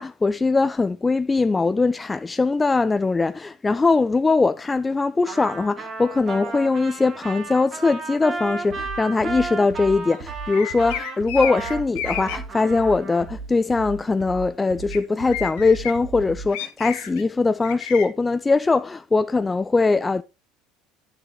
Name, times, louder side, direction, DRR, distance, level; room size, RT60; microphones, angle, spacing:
voice 1, 0.0-20.2, left 3 dB, 20° left, 0.3 m, -21 dB
Trumpet, 5.3-13.3, right 4 dB, 40° right, 2.7 m, -34 dB
sound 1, 8.7-16.5, right 5 dB, 65° right, 1.6 m, -37 dB
sound 2, 10.5-12.4 14.9-15.0 15.3-15.9 16.5-17.2 17.6-18.1, left 11 dB, 65° left, 1.2 m, -31 dB
10.5 x 6.8 x 3.1 m
hypercardioid pair, 70°, 0 cm